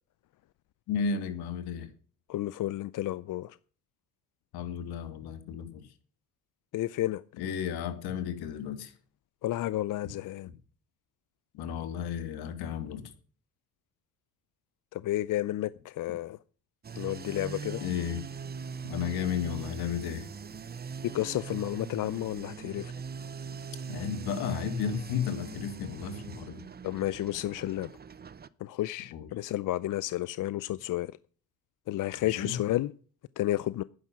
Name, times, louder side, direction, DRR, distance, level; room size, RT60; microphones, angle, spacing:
voice 1, 0.9-1.9 4.5-5.8 7.4-8.9 11.5-13.0 17.8-18.2 18.8-20.3 23.9-26.6 29.1-29.3 32.2-32.6, left 7 dB, 85° left, 2.5 m, -33 dB
voice 2, 2.3-3.6 6.7-7.2 9.4-10.5 14.9-16.4 17.0-17.8 21.1-22.9 26.8-27.9 28.6-31.1 31.9-32.9 33.4-33.8, left 15 dB, 55° left, 0.6 m, -31 dB
sound 1, 16.8-28.5, right 6 dB, 25° right, 0.8 m, -41 dB
11.5 x 9.9 x 6.1 m
cardioid pair, 100°, 37 cm